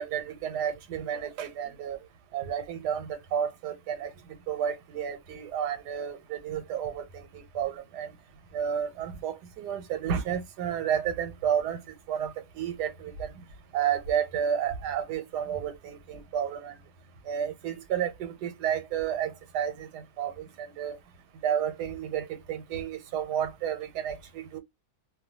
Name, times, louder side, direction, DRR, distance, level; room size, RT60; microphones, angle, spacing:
voice 1, 0.0-2.0 2.3-4.1 4.5-7.2 7.5-8.1 8.5-11.8 12.1-13.3 13.7-16.7 17.3-20.5 20.8-20.9 21.4-24.6, right 8 dB, 85° right, 1.3 m, -31 dB
2.6 x 2.2 x 2.7 m
omnidirectional pair, 1.7 m